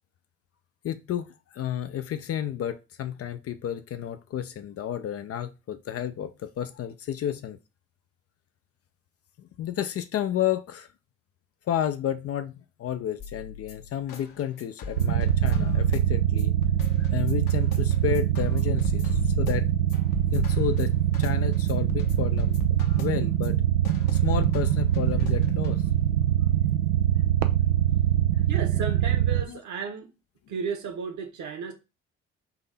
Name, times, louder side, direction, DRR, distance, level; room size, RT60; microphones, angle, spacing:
voice 1, 0.8-7.6 9.4-10.9 11.7-12.5 12.8-16.5 17.0-19.7 20.3-22.6 23.0-23.6 24.1-25.8 28.7-28.8 29.5-29.6, left 10 dB, 40° left, 0.5 m, -31 dB
sound 1, 13.2-26.2, left 5 dB, 55° left, 0.9 m, -37 dB
sound 2, 15.0-29.4, right 12 dB, 80° right, 0.5 m, -23 dB
voice 2, 28.5-30.1 30.5-31.7, right 5 dB, 50° right, 1.2 m, -34 dB
4.1 x 2.7 x 4.0 m
hypercardioid pair, 50°, 37 cm